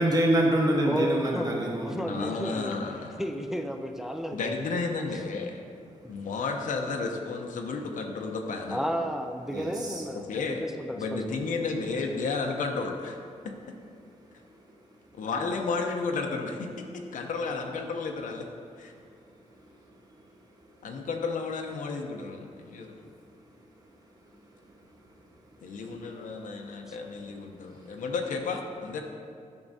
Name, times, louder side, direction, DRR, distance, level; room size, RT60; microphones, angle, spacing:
voice 1, 0.0-2.0 5.9-6.3 9.5-10.0 14.6-15.2 19.4-21.1 22.4-28.0, right 1 dB, 30° right, -2 dB, 1.1 m, -32 dB
voice 2, 0.8-2.7 3.2-4.4 8.7-11.4 26.9-27.0, equal, 5° right, 5 dB, 0.3 m, -32 dB
voice 3, 2.1-3.2 4.3-5.6 6.1-8.8 10.3-10.6 10.9-13.2 15.1-18.4 18.8-18.9 20.8-23.1 25.6-29.0, left 4 dB, 85° left, 2 dB, 0.7 m, -32 dB
10.5 x 6.0 x 2.7 m, 2.4 s
wide cardioid pair, 160°, 13 cm